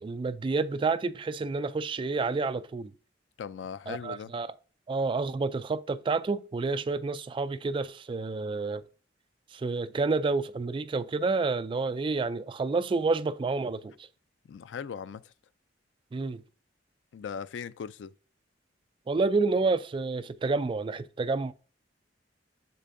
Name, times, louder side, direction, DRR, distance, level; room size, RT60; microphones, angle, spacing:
voice 1, 0.0-2.9 3.9-4.5 4.9-8.8 9.5-13.9 16.1-16.4 19.1-21.5, right 3 dB, 30° right, 0.3 m, -29 dB
voice 2, 3.4-4.3 14.5-15.3 17.1-18.1, left 7 dB, 90° left, 0.4 m, -39 dB
7.5 x 6.7 x 2.6 m
head